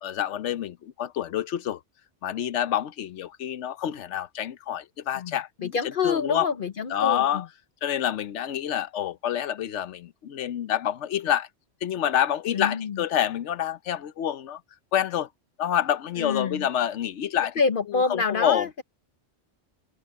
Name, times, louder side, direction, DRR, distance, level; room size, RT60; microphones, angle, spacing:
voice 1, 0.0-1.8 2.2-5.8 6.0-6.5 6.9-7.4 7.8-11.5 11.8-14.6 14.9-15.3 15.6-17.6 17.9-18.7, left 10 dB, 75° left, 1.0 m, -27 dB
voice 2, 5.2-7.5 12.5-13.0 16.2-16.7 17.6-18.8, left 5 dB, 50° left, 0.8 m, -27 dB
omnidirectional pair, 1.2 m